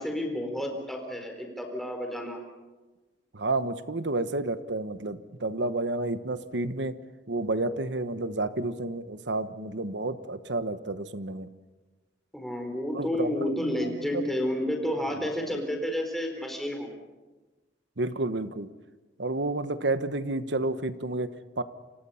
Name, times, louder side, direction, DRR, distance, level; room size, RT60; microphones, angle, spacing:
voice 1, 0.0-2.4 12.3-16.9, left 1 dB, ahead, 3 dB, 4.3 m, -30 dB
voice 2, 3.3-6.9 7.3-11.5 12.9-14.3 18.0-18.7 19.2-21.6, right 2 dB, 70° right, 12 dB, 1.2 m, -30 dB
30.0 x 26.0 x 5.8 m, 1.2 s
head